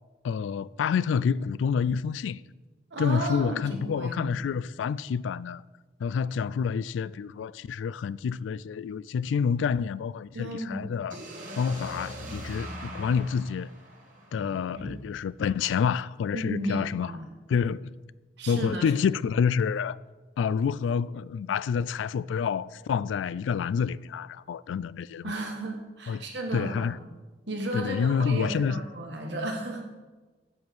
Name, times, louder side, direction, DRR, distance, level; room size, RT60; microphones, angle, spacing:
voice 1, 0.2-2.4 3.0-5.6 6.0-11.2 11.6-13.7 14.3-17.1 17.5-17.9 18.5-20.0 20.4-25.3 26.1-26.2 26.5-27.0 27.7-28.8, left 6 dB, 85° left, 0.3 m, -28 dB
voice 2, 2.9-4.3 10.3-11.0 14.3-14.5 14.7-14.9 16.3-17.3 18.4-18.9 25.2-27.0 27.5-29.8, right 1 dB, 70° right, 1.7 m, -34 dB
sound 1, 11.1-15.0, right 1 dB, 45° right, 1.9 m, -41 dB
7.7 x 7.3 x 6.1 m
head